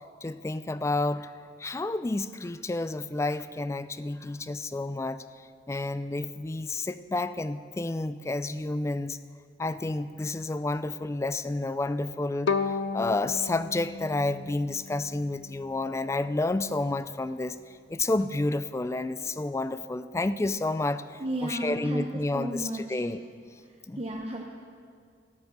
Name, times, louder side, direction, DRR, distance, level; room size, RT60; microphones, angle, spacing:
voice 1, 0.2-1.3 1.6-5.2 5.7-9.2 9.6-23.2 23.9-24.0, left 2 dB, 15° left, 13 dB, 0.3 m, -30 dB
Bowed string instrument, 12.5-15.5, left 5 dB, 75° left, 0.5 m, -33 dB
voice 2, 21.2-23.0 23.6-24.4, right 1 dB, 30° right, -1 dB, 0.8 m, -34 dB
12.0 x 10.5 x 6.6 m, 2.2 s
head